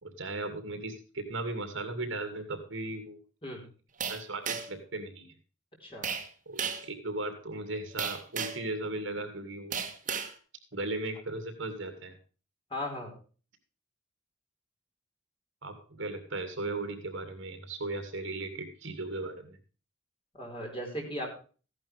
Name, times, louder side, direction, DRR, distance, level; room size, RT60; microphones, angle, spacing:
voice 1, 0.0-3.2 4.1-5.3 6.5-9.8 10.7-12.1 15.6-19.6, right 2 dB, 65° right, 7 dB, 2.6 m, -37 dB
sound 1, 4.0-4.8 6.0-6.3 6.6-6.9 8.0-8.7 9.7-10.3, right 6 dB, 40° right, 1.5 m, -34 dB
voice 2, 12.7-13.1 20.4-21.4, equal, 25° left, 0 dB, 4.9 m, -37 dB
15.5 x 11.0 x 3.4 m, 0.37 s
head